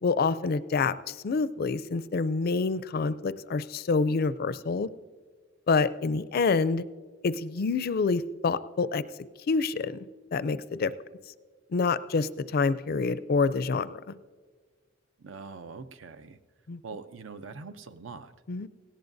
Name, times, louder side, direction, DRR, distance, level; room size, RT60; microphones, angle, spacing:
voice 1, 0.0-4.9 5.7-6.8 7.2-9.0 9.5-10.0 10.3-10.9 11.7-14.1 16.7-16.8 18.5-18.7, left 4 dB, 50° left, 16 dB, 0.4 m, -27 dB
voice 2, 15.2-16.4 16.8-18.3, right 4 dB, 70° right, 11 dB, 0.6 m, -43 dB
18.0 x 16.5 x 2.6 m, 1.5 s
head